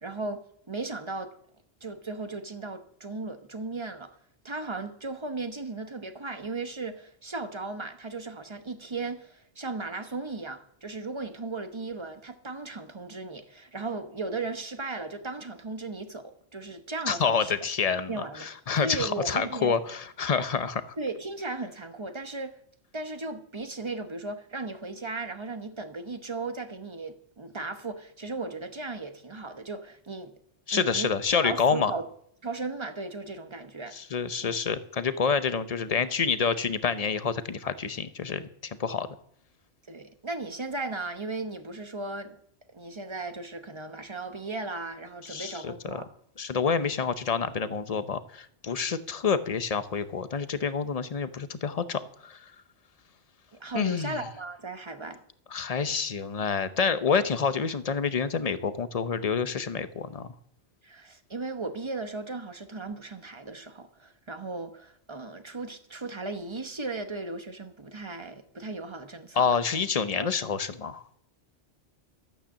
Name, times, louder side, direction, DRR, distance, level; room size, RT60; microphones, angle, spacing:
voice 1, 0.0-1.3 1.8-4.2 4.4-17.5 18.1-18.5 18.8-19.8 21.0-22.6 22.9-30.3 30.7-31.1 31.4-32.1 32.4-34.0 34.4-34.6 39.9-42.4 42.7-46.1 53.6-55.2 60.8-69.5 70.1-70.3, right 3 dB, 25° right, 0.9 m, -36 dB
voice 2, 17.1-18.1 18.4-20.8 30.7-31.9 33.9-39.1 45.3-46.0 46.4-52.4 53.7-54.2 55.5-60.3 69.4-71.0, left 6 dB, 40° left, 0.7 m, -28 dB
12.5 x 8.8 x 7.2 m
omnidirectional pair, 1.2 m